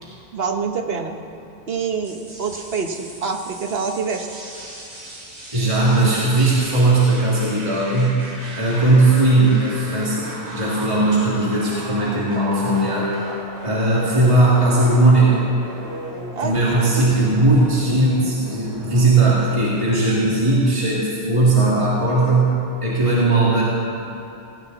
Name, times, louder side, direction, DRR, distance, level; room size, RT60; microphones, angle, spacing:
voice 1, 0.3-1.2 1.7-4.3 16.3-16.8, right 5 dB, 65° right, 5 dB, 1.3 m, -26 dB
sound 1, 2.0-20.5, right 1 dB, 80° right, 2.8 m, -36 dB
voice 2, 5.5-8.2 8.6-13.1 13.6-15.4 16.4-23.6, right 2 dB, 30° right, -7 dB, 2.4 m, -18 dB
17.5 x 17.0 x 4.0 m, 2.7 s
omnidirectional pair, 1.1 m